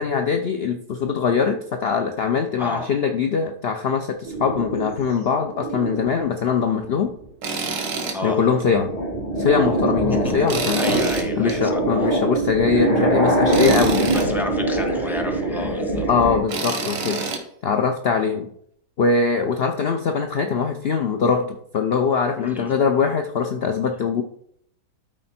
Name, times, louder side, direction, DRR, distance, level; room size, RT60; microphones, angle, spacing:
voice 1, 0.0-7.1 8.2-8.9 9.4-11.0 11.4-14.1 16.1-17.3 17.6-18.5 19.0-24.2, left 5 dB, 70° left, 5 dB, 0.5 m, -22 dB
voice 2, 2.6-2.9 8.1-8.4 10.1-10.5 10.8-11.8 13.7-13.8 14.1-16.1 22.4-22.7, left 1 dB, ahead, 3 dB, 0.8 m, -31 dB
sound 1, 4.2-6.2 6.8-7.2 7.6-16.4, right 1 dB, 30° left, 3.1 m, -23 dB
Tools, 7.4-8.2 8.6-8.7 10.5-11.5 13.5-14.3 16.5-17.4, right 4 dB, 85° right, 2.0 m, -27 dB
13.0 x 4.4 x 4.3 m, 0.68 s
omnidirectional pair, 1.9 m